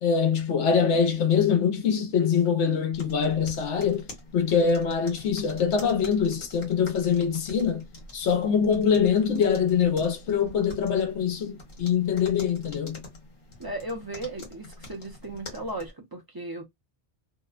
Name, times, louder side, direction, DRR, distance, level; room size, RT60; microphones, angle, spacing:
voice 1, 0.0-4.1 4.3-7.8 8.1-13.0, left 7 dB, 90° left, 1.0 m, -24 dB
sound 1, 2.9-15.9, left 1 dB, 55° left, 1.3 m, -46 dB
voice 2, 13.6-16.6, right 2 dB, 25° right, 0.5 m, -36 dB
2.7 x 2.1 x 2.3 m
omnidirectional pair, 1.1 m